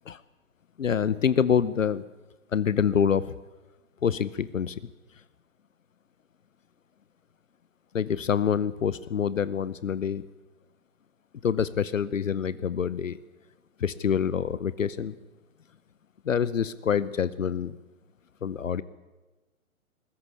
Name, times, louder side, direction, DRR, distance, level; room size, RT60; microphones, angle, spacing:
voice 1, 0.8-2.0 2.5-3.4 4.0-4.8 7.9-10.2 11.4-13.2 13.8-15.1 16.2-17.8 18.4-18.8, left 7 dB, 65° left, 18 dB, 0.8 m, -26 dB
20.5 x 14.0 x 9.7 m, 1.2 s
figure-of-eight pair, 125°, 42 cm